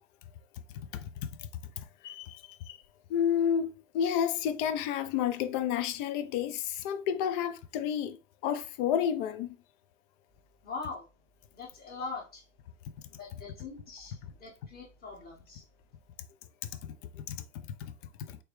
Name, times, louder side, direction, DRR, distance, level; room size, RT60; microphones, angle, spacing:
voice 1, 0.7-1.5 1.8-2.8 3.1-9.5 17.1-17.9 18.3-18.4, left 9 dB, 45° left, 0.5 m, -31 dB
voice 2, 10.6-11.0 11.5-12.4 13.2-15.6, left 4 dB, 25° left, 1.6 m, -42 dB
3.3 x 3.0 x 3.1 m
hypercardioid pair, 95°, 37 cm